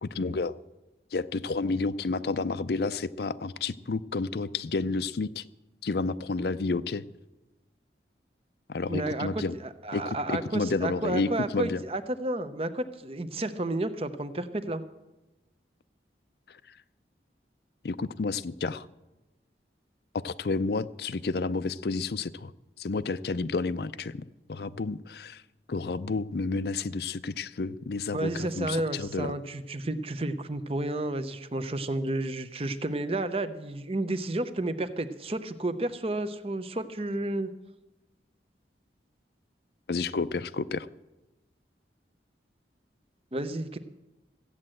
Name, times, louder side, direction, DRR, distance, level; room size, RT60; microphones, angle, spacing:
voice 1, 0.0-0.5 1.1-5.4 5.8-7.1 8.7-9.5 9.9-11.8 16.5-16.8 17.8-18.9 20.1-22.5 22.8-25.4 25.7-29.3 39.9-40.9, left 3 dB, 60° left, 15 dB, 0.5 m, -30 dB
voice 2, 8.9-9.4 9.8-14.8 28.1-37.5 43.3-43.8, right 2 dB, 30° right, 11 dB, 0.7 m, -31 dB
14.5 x 8.8 x 7.7 m, 1.0 s
head